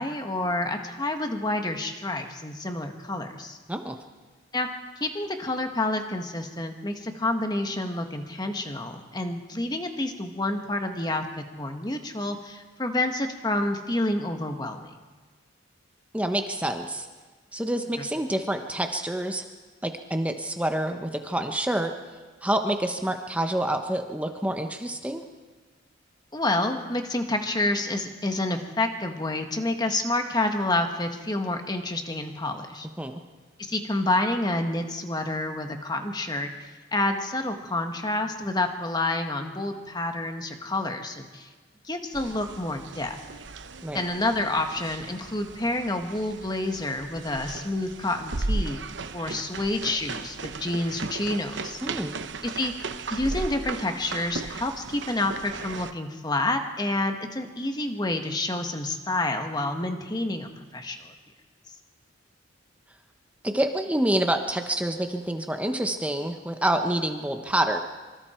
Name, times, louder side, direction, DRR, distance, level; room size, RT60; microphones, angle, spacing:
voice 1, 0.0-3.6 4.5-4.7 5.0-14.9 26.3-32.9 33.7-36.5 36.9-41.5 41.8-43.2 43.9-48.8 49.1-51.8 52.5-52.7 53.1-61.1, left 2 dB, 20° left, 5 dB, 1.7 m, -28 dB
voice 2, 16.1-17.1 17.5-19.4 19.8-21.9 22.4-25.2 33.0-33.2 43.8-44.0 51.8-52.2 63.4-67.8, right 1 dB, 5° right, 5 dB, 1.0 m, -27 dB
sound 1, 42.1-55.9, right 3 dB, 60° right, 0.9 m, -36 dB
26.0 x 24.5 x 4.6 m, 1.4 s
head